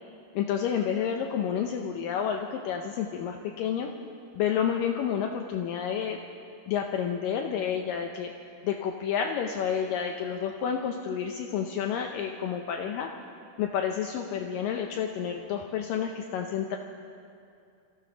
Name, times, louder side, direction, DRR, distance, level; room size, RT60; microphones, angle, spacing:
voice 1, 0.3-3.9 4.3-6.2 6.7-8.3 8.6-13.1 13.6-16.8, left 8 dB, 85° left, 3 dB, 1.9 m, -30 dB
24.5 x 15.0 x 3.9 m, 2.5 s
omnidirectional pair, 4.7 m